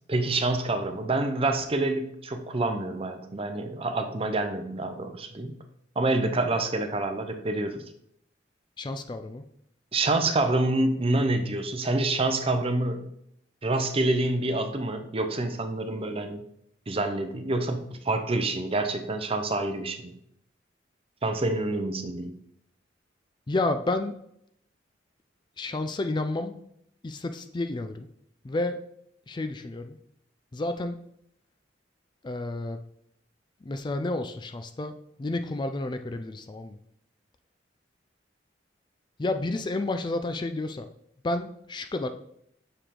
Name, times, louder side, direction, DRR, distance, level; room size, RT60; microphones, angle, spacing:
voice 1, 0.1-5.6 6.0-7.8 9.9-13.0 13.6-16.4 16.9-20.1 21.2-22.3, right 2 dB, 30° right, 7 dB, 0.7 m, -27 dB
voice 2, 8.8-9.4 23.5-24.1 25.6-26.6 27.0-28.1 28.4-28.8 29.3-30.0 30.5-31.0 32.2-32.8 33.6-34.9 35.2-36.8 39.2-40.9 41.2-42.1, left 2 dB, 25° left, 8 dB, 0.4 m, -30 dB
6.6 x 4.8 x 3.7 m, 0.72 s
head